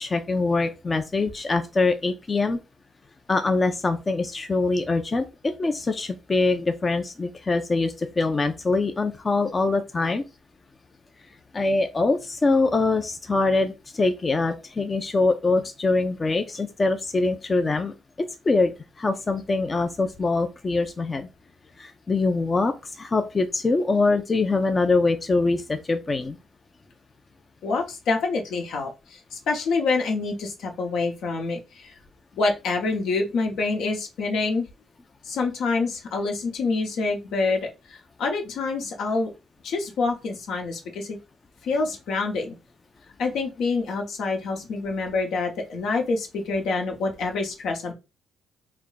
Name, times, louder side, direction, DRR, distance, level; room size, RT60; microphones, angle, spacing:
voice 1, 0.0-2.6 3.3-10.2 11.5-17.9 18.4-21.3 21.8-26.4, left 3 dB, 30° left, 7 dB, 0.4 m, -24 dB
voice 2, 27.6-31.9 32.3-34.7 35.2-39.3 39.6-41.2 41.6-42.5 43.2-47.9, left 3 dB, 75° left, 2 dB, 1.0 m, -26 dB
3.3 x 2.2 x 4.0 m, 0.27 s
cardioid pair, 90°, 0 cm